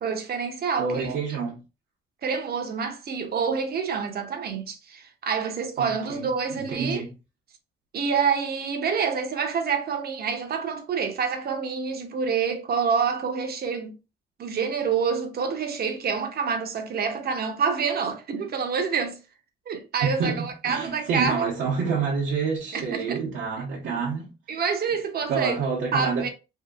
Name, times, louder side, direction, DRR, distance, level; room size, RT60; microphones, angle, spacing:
voice 1, 0.0-1.2 2.2-7.0 7.9-14.0 14.4-19.2 19.7-21.4 22.7-23.2 24.5-25.6 25.9-26.3, right 6 dB, 50° right, 0.7 m, -27 dB
voice 2, 0.8-1.6 5.8-6.2 6.5-7.1 20.0-24.3 25.3-26.3, right 5 dB, 80° right, 0.9 m, -28 dB
2.8 x 2.6 x 2.4 m
cardioid pair, 90°, 20 cm